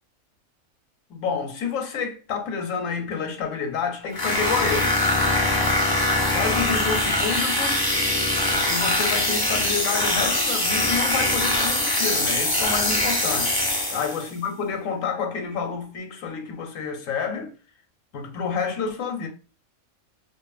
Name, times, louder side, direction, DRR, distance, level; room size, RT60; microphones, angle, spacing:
voice 1, 1.1-4.9 6.1-7.8 8.5-13.6 13.9-17.5 18.1-19.3, left 6 dB, 75° left, 1.0 m, -29 dB
sound 1, 4.1-14.3, left 1 dB, 30° left, 0.4 m, -23 dB
2.6 x 2.5 x 2.3 m
omnidirectional pair, 1.4 m